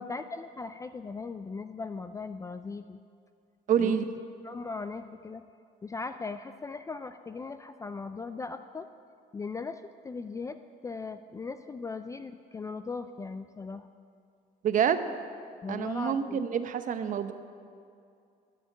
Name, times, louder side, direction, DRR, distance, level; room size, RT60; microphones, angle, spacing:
voice 1, 0.1-3.0 3.8-4.1 4.4-5.4 5.8-8.9 9.3-10.6 10.8-13.9 15.6-16.5, left 4 dB, 20° left, 10 dB, 0.3 m, -38 dB
voice 2, 3.7-4.1 14.6-15.0 15.7-17.3, right 8 dB, 50° right, 10 dB, 0.8 m, -27 dB
11.0 x 6.9 x 8.5 m, 2.4 s
cardioid pair, 110°, 17 cm